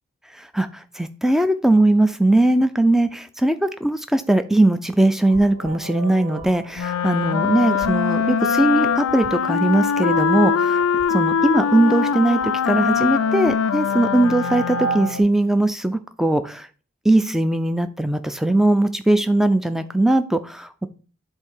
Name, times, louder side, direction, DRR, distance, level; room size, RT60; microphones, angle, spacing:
voice 1, 0.3-10.8 11.1-12.4 12.7-16.7 17.0-20.9, right 1 dB, ahead, 10 dB, 0.3 m, -19 dB
sound 1, 5.2-15.2, right 3 dB, 70° right, 1.6 m, -34 dB
Wind instrument woodwind instrument, 6.7-15.3, left 7 dB, 90° left, 0.4 m, -22 dB
7.8 x 2.7 x 5.6 m, 0.38 s
head